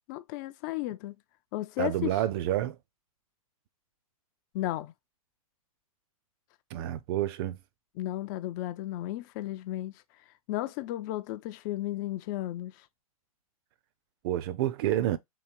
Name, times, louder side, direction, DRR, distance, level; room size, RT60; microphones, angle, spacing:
voice 1, 0.1-1.2 1.5-2.1 4.5-4.9 8.0-9.9 10.5-12.8, left 15 dB, 30° left, 0.4 m, -34 dB
voice 2, 1.8-2.8 6.7-7.6 14.2-15.2, right 12 dB, 40° right, 0.5 m, -29 dB
3.8 x 2.7 x 4.4 m
figure-of-eight pair, 115°, 19 cm